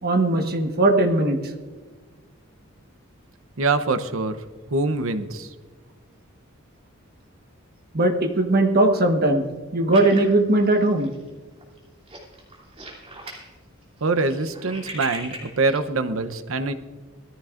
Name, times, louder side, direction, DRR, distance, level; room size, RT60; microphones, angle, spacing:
voice 1, 0.0-1.4 7.9-9.5 9.7-11.1, right 2 dB, 50° right, 4 dB, 1.3 m, -19 dB
voice 2, 3.6-4.4 4.7-5.5 14.0-16.7, right 3 dB, 75° right, 10 dB, 0.8 m, -24 dB
sound 1, 9.9-11.3 11.6-11.8 12.1-13.5 13.8-15.8, right 1 dB, 30° right, 3.1 m, -38 dB
19.5 x 14.0 x 2.5 m, 1.4 s
head